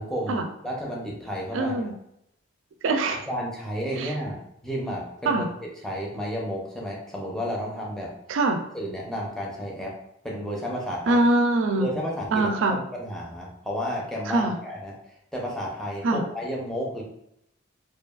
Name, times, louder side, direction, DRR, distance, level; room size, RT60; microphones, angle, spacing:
voice 1, 0.0-1.9 3.3-5.5 5.8-8.1 8.7-9.9 10.2-11.2 11.8-17.0, equal, ahead, -3 dB, 0.5 m, -32 dB
voice 2, 1.5-1.9 2.8-3.3 4.0-4.1 5.2-5.5 8.3-8.6 11.1-12.0 12.3-12.8 14.3-14.5 16.0-16.2, right 2 dB, 70° right, 5 dB, 0.4 m, -23 dB
2.7 x 2.3 x 2.3 m, 0.77 s
head